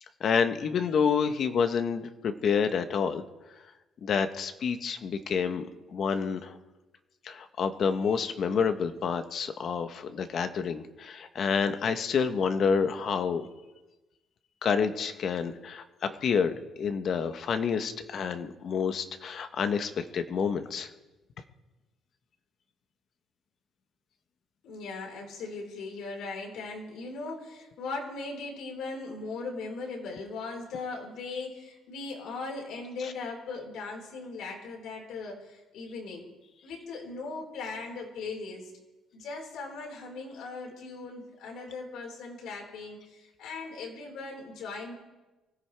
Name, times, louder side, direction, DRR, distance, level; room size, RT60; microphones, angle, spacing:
voice 1, 0.2-3.2 4.0-6.6 7.2-13.5 14.6-15.8 16.2-16.5 16.8-20.9, left 6 dB, 40° left, 8 dB, 1.0 m, -28 dB
voice 2, 24.6-36.3 36.6-38.7 39.1-44.9, left 3 dB, 70° left, -1 dB, 4.7 m, -39 dB
24.0 x 16.0 x 3.4 m, 1.1 s
cardioid pair, 175°, 0 cm